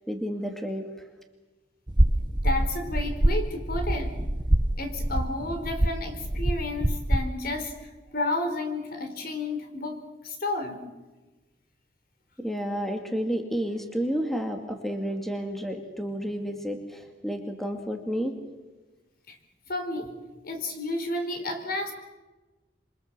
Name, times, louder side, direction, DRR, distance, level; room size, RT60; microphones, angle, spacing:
voice 1, 0.1-0.8 12.4-18.3, equal, ahead, 4 dB, 2.3 m, -31 dB
sound 1, 1.9-7.3, right 1 dB, 25° right, 0.9 m, -25 dB
voice 2, 2.4-4.1 4.8-10.0 10.2-10.8 19.3-19.4 19.7-20.1 20.4-21.9, left 2 dB, 55° left, 6 dB, 4.2 m, -31 dB
27.0 x 24.0 x 7.5 m, 1.2 s
head